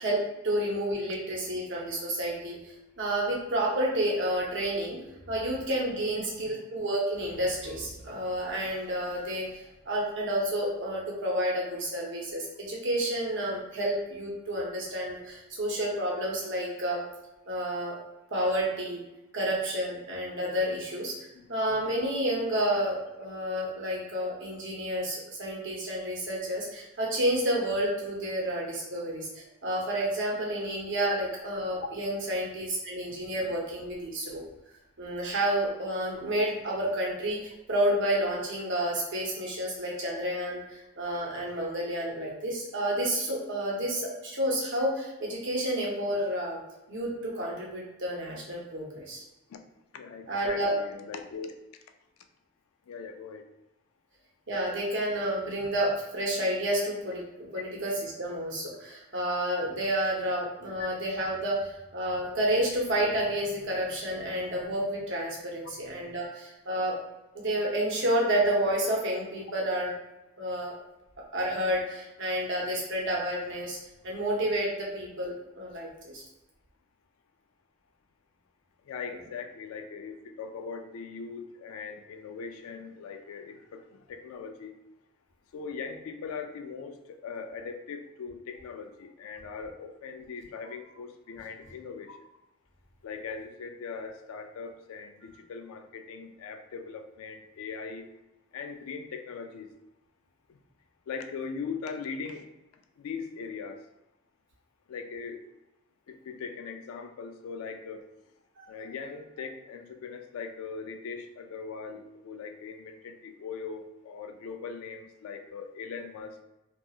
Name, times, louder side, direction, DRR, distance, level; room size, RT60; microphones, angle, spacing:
voice 1, 0.4-5.0 5.3-17.0 17.5-17.9 18.3-19.0 19.3-21.1 21.5-34.4 35.0-46.6 46.9-49.2 50.3-50.7 54.5-66.9 67.3-69.9 70.4-70.7 71.3-73.8 74.0-76.2 108.6-108.7, right 1 dB, 60° right, -3 dB, 0.8 m, -30 dB
voice 2, 6.2-6.6 21.3-21.5 49.5-49.6 49.9-51.5 52.9-53.5 57.5-57.6 65.8-65.9 78.9-84.7 85.5-92.2 93.0-98.1 98.5-99.7 101.1-102.5 103.0-103.9 104.9-105.4 106.1-108.1 108.7-116.4, left 5 dB, 80° left, 6 dB, 0.3 m, -40 dB
2.8 x 2.3 x 2.3 m, 0.96 s
head